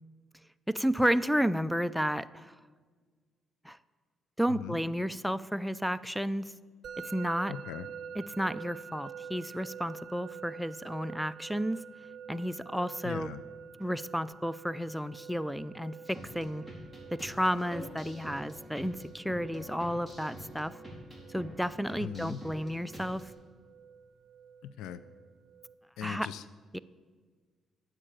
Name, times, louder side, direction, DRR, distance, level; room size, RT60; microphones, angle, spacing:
voice 1, 0.7-2.5 3.6-3.8 4.4-6.5 7.0-7.5 8.2-11.8 12.3-13.3 13.8-16.6 17.1-20.8 21.3-23.3 26.0-26.3 26.7-26.8, equal, ahead, 17 dB, 0.4 m, -32 dB
Musical instrument, 6.8-25.7, right 7 dB, 55° right, 0.8 m, -48 dB
voice 2, 7.5-7.9 13.0-13.4 22.0-22.4 24.6-25.0 26.0-26.4, left 9 dB, 90° left, 15 dB, 0.4 m, -39 dB
sound 1, 16.0-23.3, equal, 15° left, 4.1 m, -47 dB
9.8 x 7.6 x 9.0 m, 1.5 s
cardioid pair, 90°, 0 cm